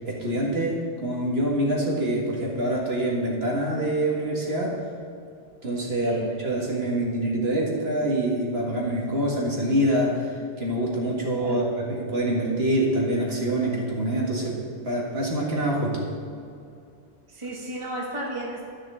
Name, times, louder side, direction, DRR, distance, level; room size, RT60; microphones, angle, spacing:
voice 1, 0.1-4.8 5.6-10.3 10.6-14.6 14.8-16.1, right 1 dB, 70° right, -3 dB, 2.1 m, -25 dB
voice 2, 6.0-6.3 11.4-11.7 17.3-18.7, right 1 dB, 30° right, -2 dB, 1.4 m, -33 dB
11.0 x 6.3 x 6.3 m, 2.5 s
omnidirectional pair, 1.1 m